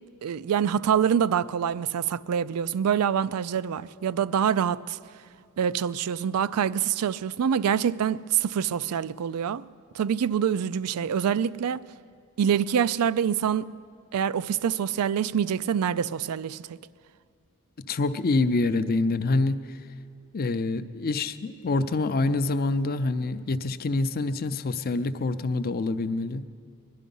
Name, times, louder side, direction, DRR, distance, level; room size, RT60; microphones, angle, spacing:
voice 1, 0.2-5.0 5.6-9.6 9.9-11.8 12.4-13.7 14.1-16.8, right 8 dB, 90° right, 0.4 m, -25 dB
voice 2, 17.8-19.6 20.3-26.5, left 3 dB, 45° left, 0.5 m, -26 dB
21.5 x 11.5 x 5.4 m
head